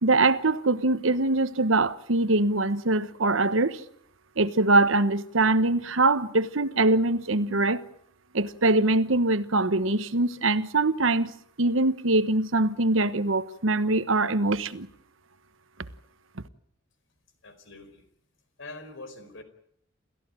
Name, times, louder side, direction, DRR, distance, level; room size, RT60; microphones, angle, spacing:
voice 1, 0.0-3.8 4.4-7.8 8.3-11.3 11.6-14.9, right 2 dB, 75° right, 1.2 m, -23 dB
voice 2, 17.4-18.1 18.6-19.4, left 2 dB, 70° left, 4.6 m, -44 dB
29.0 x 15.0 x 9.0 m
head